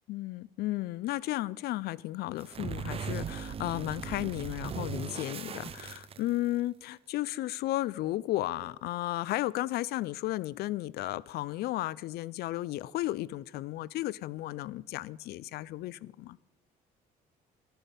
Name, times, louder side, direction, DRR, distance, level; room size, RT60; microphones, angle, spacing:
voice 1, 0.1-16.4, left 16 dB, 70° left, 0.4 m, -34 dB
sound 1, 2.4-6.6, right 7 dB, 35° right, 0.5 m, -38 dB
11.5 x 10.0 x 5.2 m
cardioid pair, 110°, 17 cm